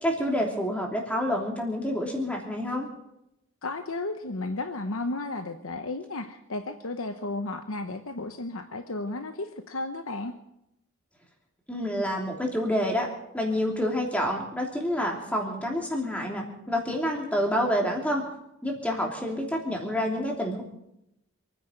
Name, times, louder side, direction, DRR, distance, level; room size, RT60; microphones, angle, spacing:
voice 1, 0.0-2.9 11.7-13.1 13.3-18.2 18.6-20.6, equal, 5° left, 0 dB, 3.0 m, -28 dB
voice 2, 3.6-10.3, left 2 dB, 70° left, 7 dB, 1.0 m, -33 dB
27.5 x 10.0 x 5.1 m, 0.83 s
head